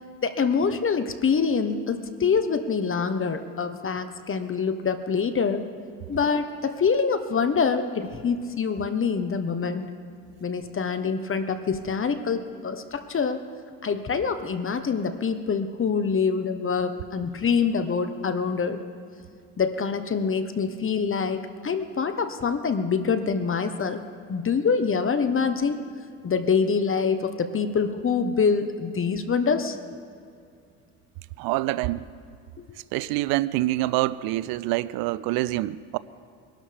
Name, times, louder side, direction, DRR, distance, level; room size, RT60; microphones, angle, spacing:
voice 1, 0.2-5.7 6.1-9.9 10.4-13.4 13.8-18.8 19.6-24.0 24.3-25.8 26.2-29.8, left 5 dB, 35° left, 1.1 m, -25 dB
voice 2, 31.4-32.1 32.9-36.0, right 17 dB, 80° right, 0.5 m, -26 dB
23.5 x 12.5 x 3.5 m
supercardioid pair, 70°, 36 cm